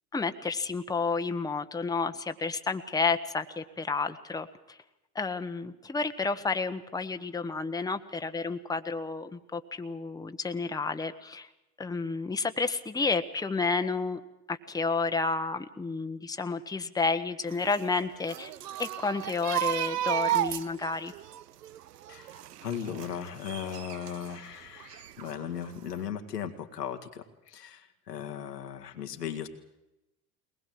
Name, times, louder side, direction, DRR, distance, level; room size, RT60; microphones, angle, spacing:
voice 1, 0.1-4.8 5.1-11.5 11.8-14.2 14.5-18.5 18.8-21.1, left 4 dB, 10° left, 8 dB, 1.1 m, -31 dB
sound 1, 17.5-24.4 24.8-25.7 25.9-26.1, right 13 dB, 80° right, 0.9 m, -34 dB
voice 2, 22.1-29.5, left 8 dB, 85° left, 5 dB, 1.9 m, -37 dB
21.5 x 20.0 x 7.7 m, 0.93 s
hypercardioid pair, 75°, 47 cm